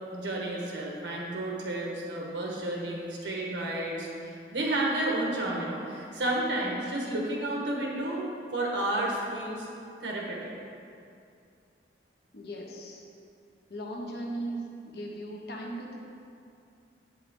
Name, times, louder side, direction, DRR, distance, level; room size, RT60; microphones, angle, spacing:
voice 1, 0.1-8.2 8.5-9.7 10.0-10.5, right 1 dB, 75° right, -2 dB, 1.4 m, -31 dB
voice 2, 12.3-13.1 13.7-16.0, right 1 dB, 55° left, -1 dB, 1.0 m, -38 dB
8.3 x 5.6 x 3.7 m, 2.5 s
head